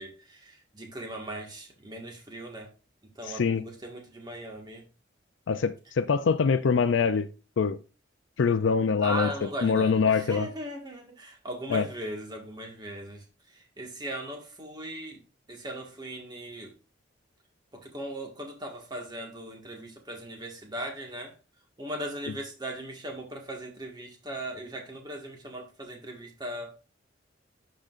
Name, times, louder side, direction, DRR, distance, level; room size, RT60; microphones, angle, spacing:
voice 1, 0.0-2.7 3.2-4.8 9.0-15.2 15.5-16.7 17.7-21.4 21.8-26.8, right 1 dB, 20° right, 1.7 m, -38 dB
voice 2, 5.5-7.3 7.6-7.8 8.4-9.3 9.6-10.5 11.7-11.8, left 5 dB, 75° left, 0.4 m, -24 dB
12.0 x 5.0 x 2.5 m
head